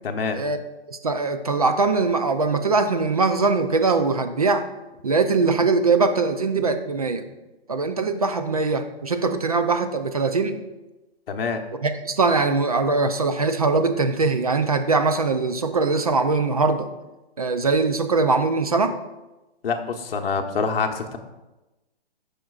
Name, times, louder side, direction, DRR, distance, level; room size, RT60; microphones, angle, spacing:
voice 1, 0.0-0.4 11.3-11.6 19.6-21.2, left 5 dB, 65° left, 4 dB, 1.0 m, -26 dB
voice 2, 0.9-4.7 5.0-7.2 7.7-10.6 11.8-16.9 17.4-18.9, right 3 dB, 40° right, 8 dB, 0.4 m, -21 dB
14.5 x 5.0 x 2.4 m, 1.1 s
hypercardioid pair, 170°, 32 cm